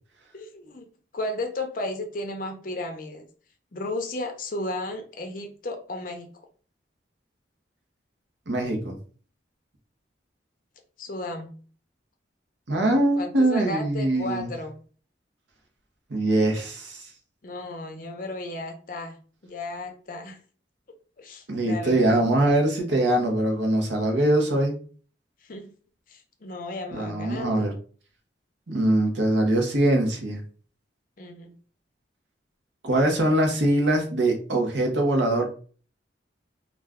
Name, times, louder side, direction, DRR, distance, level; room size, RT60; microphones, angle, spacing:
voice 1, 0.3-0.9 1.1-3.3 3.7-6.3 11.0-11.5 13.2-14.7 17.4-19.2 19.4-20.4 21.2-22.2 25.4-25.7 26.1-27.7 31.2-31.5, left 1 dB, 45° left, 4 dB, 0.5 m, -34 dB
voice 2, 8.5-9.0 12.7-14.5 16.1-17.1 21.5-24.7 26.9-27.7 28.7-30.4 32.8-35.4, right 1 dB, 70° right, 2 dB, 0.7 m, -22 dB
2.4 x 2.2 x 3.5 m, 0.41 s
head